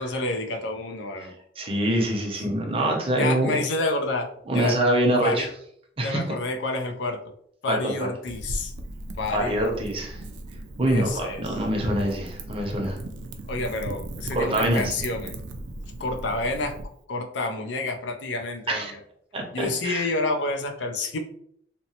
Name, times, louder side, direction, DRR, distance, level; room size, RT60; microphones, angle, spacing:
voice 1, 0.0-1.3 2.2-2.3 3.1-4.3 4.5-4.8 5.2-5.5 6.0-7.2 7.6-8.7 9.2-9.7 10.9-11.6 13.5-15.4 16.0-16.7 17.1-19.0 19.5-21.2, left 2 dB, 80° left, 3 dB, 0.5 m, -29 dB
voice 2, 1.6-3.6 4.5-5.5 6.0-6.2 7.7-7.9 9.3-10.2 10.8-13.0 14.3-14.9 18.7-18.9 19.3-20.0, right 1 dB, 30° right, 0 dB, 0.6 m, -24 dB
Wind / Fire, 8.3-16.8, right 1 dB, 80° right, 0.4 m, -37 dB
2.8 x 2.0 x 2.8 m, 0.66 s
head